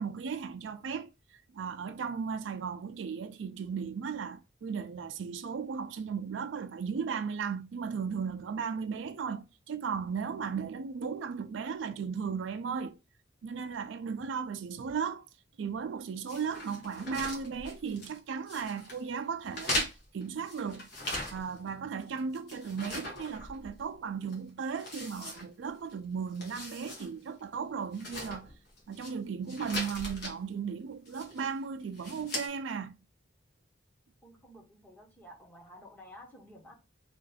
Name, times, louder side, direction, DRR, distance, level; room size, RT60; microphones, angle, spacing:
voice 1, 0.0-13.0 13.4-15.3 15.6-20.9 21.3-28.5 28.9-33.0, right 6 dB, 75° right, 0.4 m, -36 dB
sound 1, 16.3-18.2 18.5-19.0 19.5-21.7 22.0-23.9 24.3-24.4 24.8-25.9 26.3-27.1 27.4-27.5 27.9-29.1 29.5-30.3 31.1-31.5 31.9-32.5, left 1 dB, 60° left, 1.2 m, -39 dB
voice 2, 34.2-36.7, equal, 10° left, 1.0 m, -52 dB
3.0 x 2.6 x 3.9 m
head